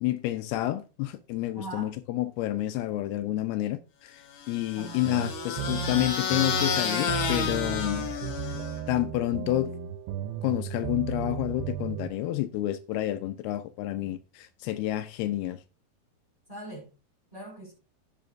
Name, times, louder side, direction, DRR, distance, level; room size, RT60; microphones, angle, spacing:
voice 1, 0.0-4.2 4.5-8.0 8.9-9.8 10.4-15.6, left 15 dB, 85° left, 2.6 m, -29 dB
voice 2, 1.5-1.9 4.7-5.1 7.8-8.1 16.5-16.9 17.3-17.7, right 2 dB, 10° left, 4.4 m, -41 dB
sound 1, 4.4-8.9, left 7 dB, 60° left, 2.6 m, -31 dB
sound 2, 5.0-12.1, right 9 dB, 80° right, 2.5 m, -35 dB
Piano, 5.8-9.9, left 1 dB, 35° left, 3.0 m, -51 dB
16.0 x 5.8 x 2.6 m
omnidirectional pair, 4.6 m